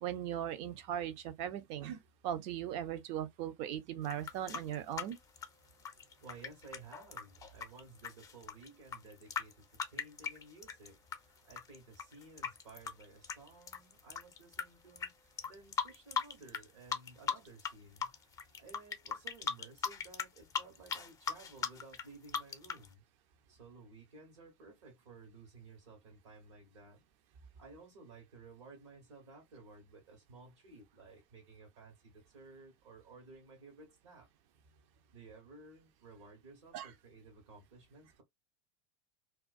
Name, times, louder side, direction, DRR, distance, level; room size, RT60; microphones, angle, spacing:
voice 1, 0.0-5.2 36.7-36.9, right 10 dB, 45° right, 0.5 m, -39 dB
sound 1, 4.0-11.2 11.5-14.6 15.0-15.1 15.4-16.6 16.9-17.7 18.0-22.9, left 7 dB, 20° left, 0.5 m, -38 dB
voice 2, 6.2-18.1 18.6-23.0 23.5-27.0 27.5-34.3 35.1-38.2, right 3 dB, 70° right, 1.1 m, -56 dB
2.3 x 2.2 x 2.3 m
figure-of-eight pair, 85°, 15 cm